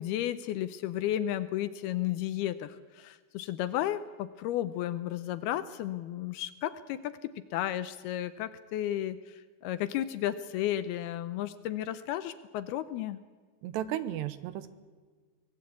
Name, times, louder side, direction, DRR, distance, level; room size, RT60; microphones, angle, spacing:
voice 1, 0.0-13.2, left 12 dB, 75° left, 13 dB, 2.5 m, -33 dB
voice 2, 13.6-14.7, right 12 dB, 80° right, 13 dB, 3.1 m, -34 dB
24.0 x 19.0 x 8.5 m, 1.5 s
omnidirectional pair, 5.0 m